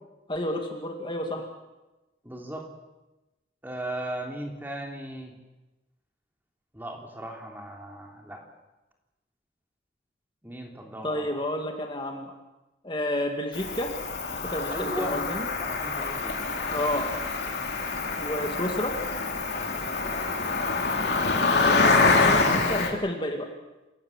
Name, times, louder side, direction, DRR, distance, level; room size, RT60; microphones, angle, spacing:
voice 1, 0.3-1.5 11.0-12.3 12.8-13.9 14.4-15.5 16.7-17.2 18.2-19.0 21.4-23.5, left 1 dB, 25° left, 3 dB, 2.2 m, -30 dB
voice 2, 2.2-2.7 3.6-5.3 6.7-8.4 10.4-11.4 14.7-15.2 15.6-16.8, right 1 dB, 10° right, 1 dB, 3.2 m, -37 dB
Cricket, 13.5-22.9, left 3 dB, 60° left, 3.2 m, -26 dB
28.0 x 17.5 x 7.4 m, 1.0 s
head